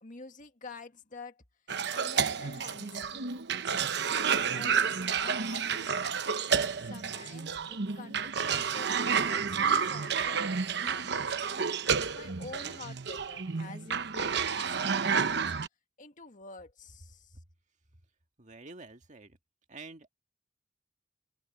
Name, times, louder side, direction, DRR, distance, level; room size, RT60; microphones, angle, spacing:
voice 1, 0.0-1.4 1.9-3.4 3.7-6.4 6.8-15.5 16.0-17.4, left 3 dB, 45° left, 1.8 m, -49 dB
Cough, 1.7-15.7, right 6 dB, 65° right, 0.9 m, -30 dB
voice 2, 18.4-19.4 19.7-20.1, right 3 dB, 45° right, 1.7 m, -48 dB
open air
head